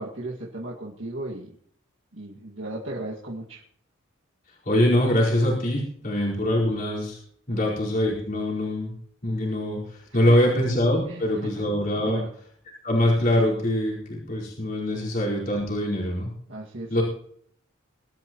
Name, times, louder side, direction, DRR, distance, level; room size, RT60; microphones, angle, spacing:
voice 1, 0.0-1.5 2.1-3.6 7.5-7.6 10.1-10.5 11.1-11.7 12.0-12.3 14.9-15.0 16.5-17.0, right 2 dB, 70° right, -4 dB, 2.2 m, -36 dB
voice 2, 4.6-7.2 7.5-8.9 9.2-12.2 12.8-16.3 16.9-17.0, left 1 dB, 45° left, -5 dB, 4.7 m, -23 dB
23.0 x 12.5 x 3.1 m, 0.63 s
head